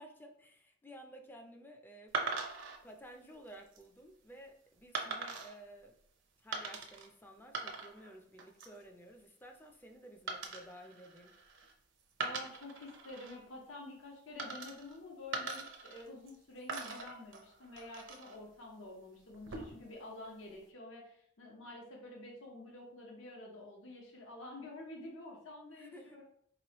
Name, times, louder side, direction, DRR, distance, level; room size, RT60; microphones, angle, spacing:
voice 1, 0.0-2.1 2.8-6.0 6.4-11.3 25.7-26.2, right 1 dB, 10° left, 4 dB, 0.4 m, -54 dB
sound 1, 2.1-2.8 3.5-3.8 4.9-5.5 6.5-7.1 7.4-8.1 8.4-8.8 10.3-11.7 12.1-13.4 14.4-15.0 15.3-16.4 16.7-18.4 19.3-19.9, right 3 dB, 65° right, 0.6 m, -41 dB
voice 2, 12.2-25.9, left 2 dB, 75° left, -1 dB, 1.0 m, -49 dB
4.2 x 3.0 x 3.0 m, 0.66 s
head